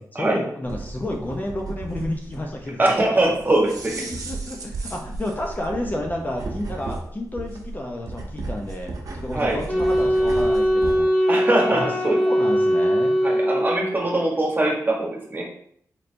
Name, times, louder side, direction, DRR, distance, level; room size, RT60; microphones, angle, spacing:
voice 1, 0.1-3.0 3.9-11.1 11.7-13.2, left 1 dB, 25° left, 1 dB, 0.6 m, -31 dB
sound 1, 0.6-11.0, right 3 dB, 65° right, 0.8 m, -34 dB
voice 2, 2.8-4.0 9.3-9.6 11.3-12.2 13.2-15.4, right 2 dB, 30° right, -1 dB, 1.1 m, -22 dB
Wind instrument woodwind instrument, 9.7-14.1, equal, ahead, 1.0 m, -21 dB
4.4 x 3.2 x 2.6 m, 0.64 s
cardioid pair, 80°, 7 cm